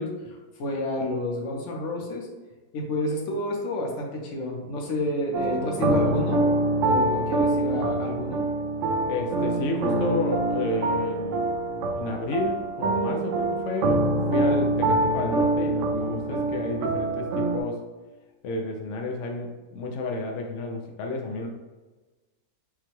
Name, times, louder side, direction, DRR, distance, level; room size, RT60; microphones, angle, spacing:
voice 1, 0.0-2.3 2.7-6.4 6.8-8.4, left 1 dB, 55° left, 0 dB, 0.9 m, -30 dB
sound 1, 5.3-17.6, right 2 dB, 75° right, 0.7 m, -25 dB
voice 2, 5.6-6.2 9.1-17.9 18.4-21.5, left 2 dB, 85° left, 1 dB, 0.6 m, -31 dB
5.6 x 2.2 x 3.0 m, 1.2 s
omnidirectional pair, 1.9 m